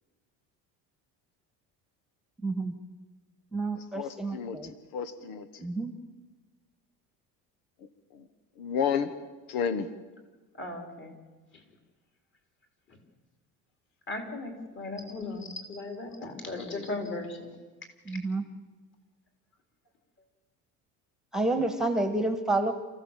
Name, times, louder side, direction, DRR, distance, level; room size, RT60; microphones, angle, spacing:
voice 1, 2.4-2.7 3.5-4.7 5.6-5.9 18.0-18.4 21.3-22.7, right 2 dB, ahead, 7 dB, 1.5 m, -29 dB
voice 2, 3.7-5.7 8.1-8.3 8.6-9.1 9.5-9.9 16.5-16.9, left 7 dB, 85° left, 12 dB, 1.4 m, -32 dB
voice 3, 10.6-11.2 14.1-17.6, left 2 dB, 35° left, 3 dB, 4.0 m, -37 dB
28.0 x 15.0 x 7.5 m, 1.3 s
cardioid pair, 140°, 34 cm